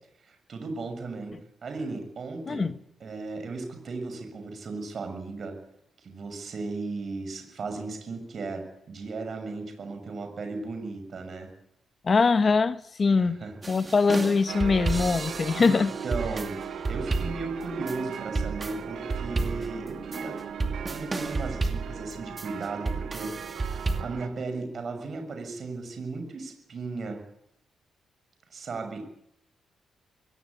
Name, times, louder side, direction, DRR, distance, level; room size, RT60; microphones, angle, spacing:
voice 1, 0.3-1.4 1.6-2.7 3.0-5.5 6.0-11.5 13.2-13.5 15.6-16.6 16.9-27.2 28.5-29.0, right 3 dB, 45° right, 6.8 m, -36 dB
voice 2, 12.0-13.4 13.7-15.9, left 4 dB, 35° left, 1.1 m, -22 dB
sound 1, 13.6-24.0, right 3 dB, 25° right, 2.5 m, -32 dB
sound 2, 14.5-24.3, right 7 dB, 75° right, 2.4 m, -38 dB
22.0 x 18.0 x 9.8 m
cardioid pair, 125°, 0 cm